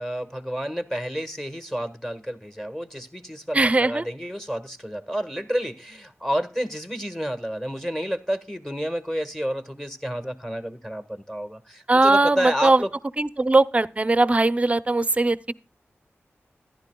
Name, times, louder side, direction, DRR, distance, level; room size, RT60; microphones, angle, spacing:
voice 1, 0.0-12.9, equal, 5° left, 1.4 m, -30 dB
voice 2, 3.5-4.1 11.9-12.8 13.2-15.5, right 2 dB, 25° right, 0.6 m, -20 dB
14.5 x 11.5 x 2.3 m
wide cardioid pair, 65°, 5 cm